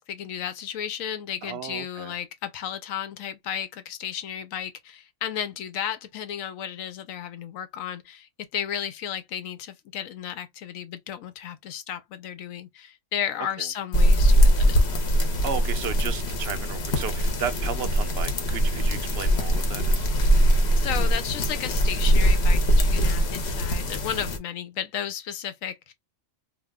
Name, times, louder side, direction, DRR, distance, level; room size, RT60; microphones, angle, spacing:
voice 1, 0.0-14.9 20.8-25.9, left 9 dB, 80° left, 1.0 m, -33 dB
voice 2, 1.4-2.1 13.6-13.7 15.4-20.1 23.1-23.3, right 8 dB, 65° right, 0.7 m, -34 dB
sound 1, 13.9-24.4, equal, 60° left, 1.0 m, -21 dB
2.5 x 2.1 x 3.5 m
omnidirectional pair, 1.4 m